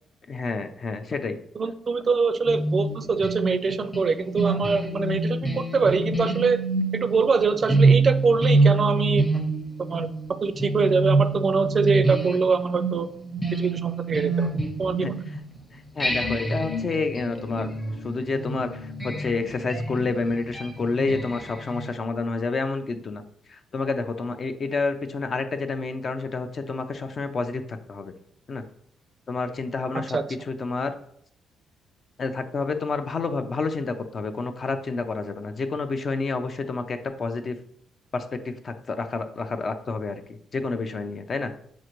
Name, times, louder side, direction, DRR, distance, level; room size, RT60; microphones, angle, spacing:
voice 1, 0.3-1.4 15.0-15.1 15.7-17.7 18.0-23.2 23.5-28.1 28.5-28.6 29.3-30.2 30.5-30.9 32.2-37.6 38.1-40.2 40.5-41.5, left 3 dB, 45° left, 8 dB, 0.5 m, -29 dB
voice 2, 1.6-6.6 6.9-9.3 9.8-10.1 10.4-13.1 13.5-14.5 14.8-15.2 30.1-30.2, right 4 dB, 40° right, 10 dB, 0.4 m, -23 dB
sound 1, 2.5-15.5 16.0-21.9, right 3 dB, 15° left, 0.8 m, -26 dB
6.2 x 2.5 x 3.0 m, 0.66 s
cardioid pair, 90°, 0 cm